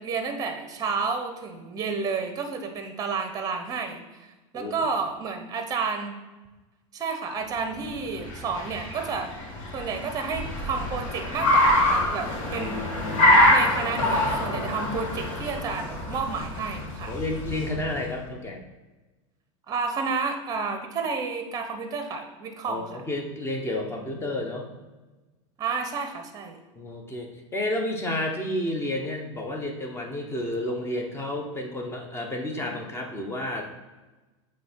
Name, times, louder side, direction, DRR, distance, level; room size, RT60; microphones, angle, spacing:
voice 1, 0.0-4.0 4.5-6.2 6.9-9.3 9.7-12.8 13.5-17.1 19.7-23.0 25.6-26.6, right 4 dB, 20° right, 6 dB, 0.8 m, -31 dB
Car, 7.9-18.1, left 1 dB, 75° left, 2.0 m, -25 dB
voice 2, 12.5-13.0 17.1-18.6 22.7-24.7 26.7-33.6, left 1 dB, 15° left, 2 dB, 0.9 m, -31 dB
7.7 x 3.2 x 4.4 m, 1.2 s
supercardioid pair, 130°, 17 cm